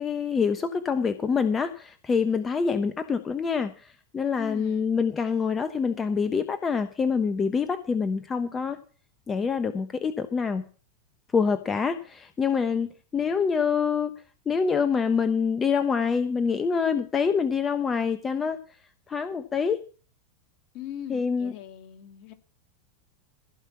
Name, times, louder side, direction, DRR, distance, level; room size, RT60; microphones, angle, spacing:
voice 1, 0.0-8.8 9.3-10.6 11.3-14.1 14.5-18.6 19.1-19.8 21.1-21.5, left 6 dB, 20° left, 11 dB, 1.1 m, -26 dB
voice 2, 4.4-4.9 20.7-22.3, left 10 dB, 50° left, 8 dB, 2.1 m, -40 dB
15.5 x 5.6 x 7.3 m, 0.38 s
hypercardioid pair, 90°, 0 cm